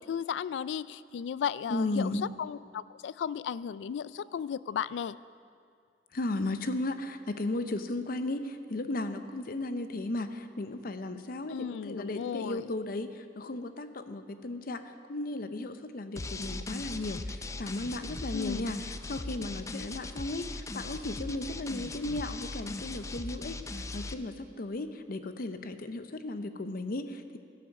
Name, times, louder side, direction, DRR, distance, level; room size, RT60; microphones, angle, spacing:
voice 1, 0.0-2.1 2.4-5.2 11.5-12.7 18.3-18.6, left 8 dB, 90° left, 18 dB, 0.3 m, -35 dB
voice 2, 1.7-2.3 6.1-27.4, left 2 dB, 55° left, 10 dB, 0.6 m, -35 dB
sound 1, 16.2-24.1, left 2 dB, 20° left, 0.4 m, -39 dB
15.0 x 6.9 x 6.4 m, 2.2 s
head